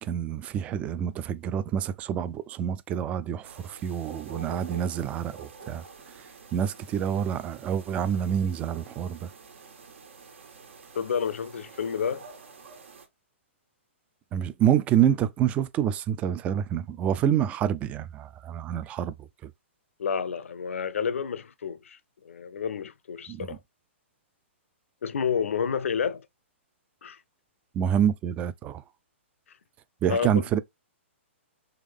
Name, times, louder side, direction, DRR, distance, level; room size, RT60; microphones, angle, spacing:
voice 1, 0.0-5.8 6.5-9.3 14.3-19.1 19.4-19.5 23.3-23.6 27.7-28.8 30.0-30.6, right 9 dB, 20° right, 0.3 m, -27 dB
sound 1, 3.4-13.1, right 5 dB, 75° right, 1.5 m, -48 dB
voice 2, 10.9-12.2 20.0-23.6 25.0-26.3 27.0-27.2 30.1-30.4, left 6 dB, 85° left, 0.5 m, -30 dB
3.6 x 3.2 x 3.4 m
hypercardioid pair, 145°, 7 cm